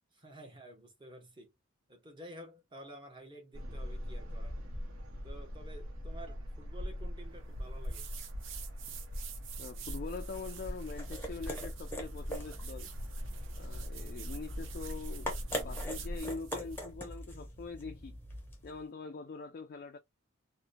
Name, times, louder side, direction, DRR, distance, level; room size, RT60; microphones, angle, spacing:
voice 1, 0.1-1.5 1.9-4.6 5.2-8.1, right 1 dB, 25° right, 0.9 m, -51 dB
sound 1, 3.5-16.2, equal, 80° right, 0.8 m, -42 dB
sound 2, 7.8-16.9, right 8 dB, 60° right, 0.5 m, -49 dB
voice 2, 9.6-12.9 13.6-18.2 18.6-20.0, left 4 dB, 45° left, 0.3 m, -44 dB
sound 3, 10.6-18.8, equal, 10° left, 0.7 m, -43 dB
2.8 x 2.1 x 2.5 m
head